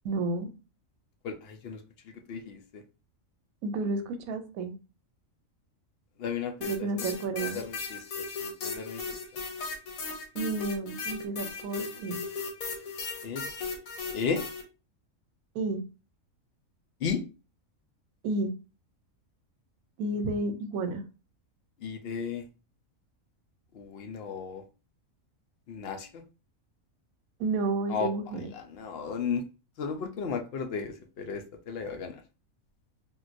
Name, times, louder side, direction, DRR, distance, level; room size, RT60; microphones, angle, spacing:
voice 1, 0.0-0.5 3.6-4.8 6.6-7.6 10.3-12.2 15.5-15.8 18.2-18.5 20.0-21.0 27.4-28.5, right 3 dB, 90° right, 1.0 m, -31 dB
voice 2, 1.2-1.8 2.0-2.8 6.2-7.1 7.4-8.0 8.4-9.2 13.2-13.5 14.1-14.4 17.0-17.2 21.8-22.5 23.7-24.6 25.7-26.2 27.9-28.1 28.5-29.5 29.8-32.2, left 6 dB, 60° left, 0.6 m, -34 dB
sound 1, 6.6-14.6, left 4 dB, 90° left, 1.2 m, -36 dB
3.7 x 2.5 x 2.5 m
omnidirectional pair, 1.4 m